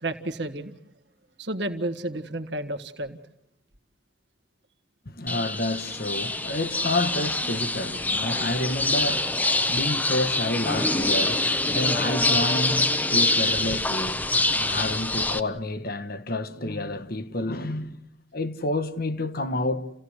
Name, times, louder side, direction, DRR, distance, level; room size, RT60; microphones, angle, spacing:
voice 1, 0.0-0.8 1.4-3.2, right 1 dB, 70° right, 1.7 m, -31 dB
voice 2, 5.0-14.3 14.5-18.0 18.3-19.9, left 1 dB, 55° left, 1.4 m, -29 dB
sound 1, 5.3-15.4, left 2 dB, 10° left, 0.8 m, -25 dB
29.0 x 16.5 x 8.1 m
head